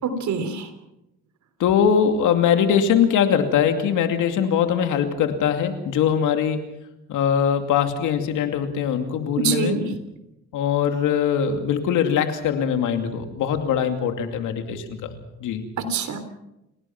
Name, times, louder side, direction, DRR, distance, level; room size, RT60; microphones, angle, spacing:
voice 1, 0.0-0.7 9.4-9.9 15.8-16.2, right 5 dB, 70° right, 9 dB, 3.5 m, -25 dB
voice 2, 1.6-6.6 7.1-9.8 10.5-15.7, left 8 dB, 90° left, 6 dB, 2.6 m, -22 dB
28.5 x 18.0 x 6.0 m, 0.89 s
cardioid pair, 90°, 30 cm